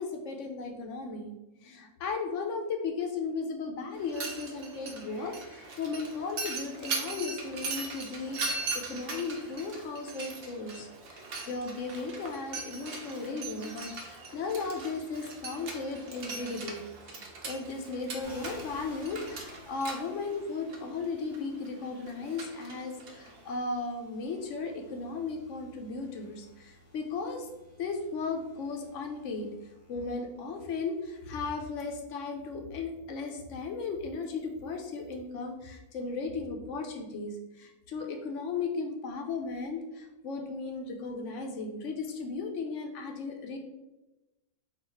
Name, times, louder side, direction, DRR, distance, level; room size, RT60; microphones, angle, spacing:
voice 1, 0.0-1.4 1.6-16.8 17.1-27.5 27.8-29.5 29.9-43.6, left 4 dB, 65° left, 4 dB, 0.9 m, -36 dB
Mechanisms, 3.9-23.6, right 3 dB, 55° right, 0.7 m, -40 dB
sound 1, 18.2-31.6 32.3-35.2, left 1 dB, 15° left, 0.5 m, -56 dB
3.9 x 2.4 x 4.4 m, 1.0 s
omnidirectional pair, 1.6 m